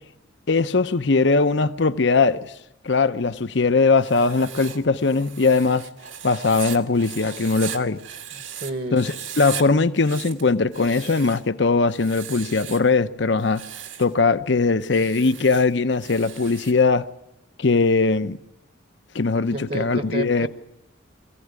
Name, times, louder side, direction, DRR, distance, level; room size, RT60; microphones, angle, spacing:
voice 1, 0.5-2.5 2.8-5.9 6.2-8.0 8.9-13.6 14.0-17.1 17.6-18.4 19.1-20.5, left 4 dB, 60° left, 0.7 m, -20 dB
Writing, 4.0-8.7 9.0-9.6 9.9-11.5 11.9-12.9 13.4-14.1 14.8-16.8, right 9 dB, 75° right, 1.8 m, -37 dB
voice 2, 8.3-9.1 19.5-20.5, right 2 dB, 50° right, 1.2 m, -31 dB
23.0 x 15.5 x 9.6 m
head